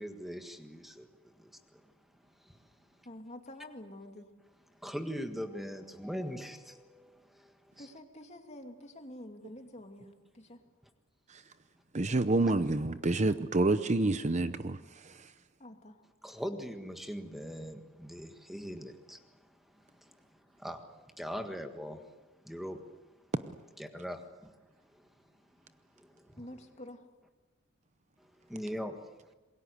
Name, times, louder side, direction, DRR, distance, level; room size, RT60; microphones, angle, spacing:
voice 1, 0.0-1.9 2.4-2.6 4.8-7.9 16.2-20.8 21.2-22.1 22.4-23.0 23.8-24.5 24.9-25.1 25.9-26.4 28.2-29.0, equal, ahead, 1.6 m, -42 dB
voice 2, 3.0-4.3 7.8-10.1 10.3-10.6 15.6-16.0 26.4-27.1, left 1 dB, 30° left, 2.5 m, -48 dB
voice 3, 11.9-15.3, right 2 dB, 35° right, 0.7 m, -28 dB
27.5 x 22.0 x 8.1 m
head